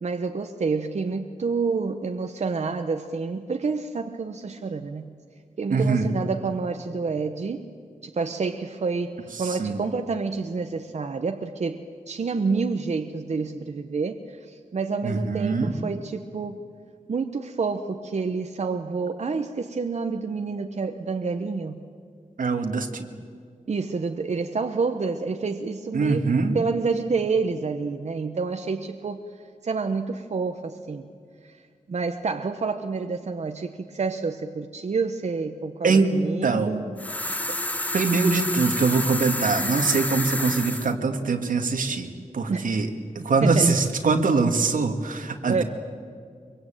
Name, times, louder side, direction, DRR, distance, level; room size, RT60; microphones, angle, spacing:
voice 1, 0.0-5.1 5.6-7.6 8.0-16.6 17.1-21.8 23.7-26.2 26.5-29.2 29.6-31.1 31.4-31.6 31.9-36.9 42.5-42.8 43.2-43.7 45.5-45.6, right 4 dB, 55° right, 6 dB, 1.0 m, -28 dB
voice 2, 5.7-6.1 9.6-9.8 15.0-15.7 22.4-23.1 25.9-26.6 35.8-36.1 36.4-36.7 37.9-42.1 42.3-42.9 43.2-45.6, right 4 dB, 85° right, 5 dB, 2.1 m, -23 dB
sound 1, 37.0-40.9, left 1 dB, 10° left, 0.9 m, -29 dB
24.0 x 23.5 x 9.1 m, 2.1 s
wide cardioid pair, 120°, 14 cm